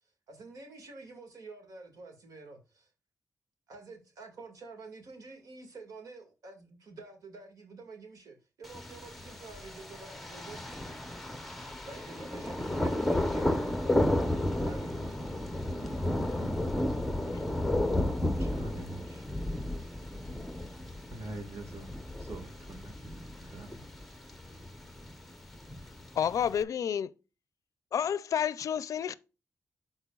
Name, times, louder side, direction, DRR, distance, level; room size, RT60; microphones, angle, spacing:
voice 1, 0.3-2.9 3.7-10.9 11.9-13.8 14.6-14.9, right 3 dB, 90° right, 2.0 m, -48 dB
Thunder, 8.6-26.6, left 1 dB, 5° left, 0.8 m, -33 dB
voice 2, 18.4-19.2 21.1-21.9 22.2-23.8, right 2 dB, 50° right, 1.8 m, -44 dB
voice 3, 26.2-27.1 27.9-29.1, left 8 dB, 75° left, 0.4 m, -30 dB
11.5 x 4.3 x 2.3 m
wide cardioid pair, 165°, 6 cm